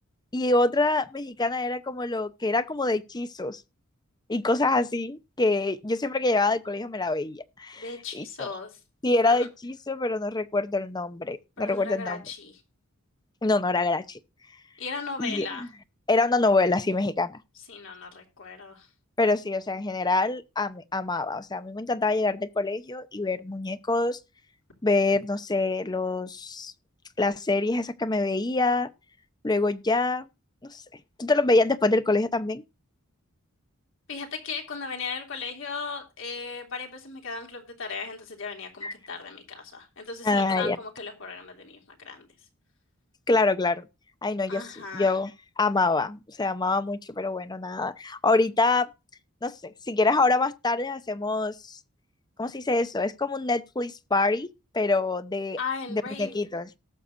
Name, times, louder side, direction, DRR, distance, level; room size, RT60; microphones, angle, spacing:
voice 1, 0.3-3.6 4.3-8.5 9.0-12.2 13.4-14.2 15.2-15.5 16.1-17.4 19.2-24.2 24.8-26.7 27.2-28.9 29.4-30.3 30.7-30.8 31.2-32.6 38.8-38.9 40.2-40.8 43.3-43.9 44.2-44.6 44.9-45.3 45.6-48.9 49.4-51.8 52.4-54.5 54.7-55.6 55.9-56.7, left 3 dB, 20° left, 0.7 m, -25 dB
voice 2, 7.8-8.8 9.2-9.5 11.6-12.6 14.8-15.6 17.7-18.9 34.1-42.3 44.5-45.2 55.6-56.4, left 5 dB, 65° left, 3.2 m, -37 dB
19.0 x 6.6 x 2.6 m
head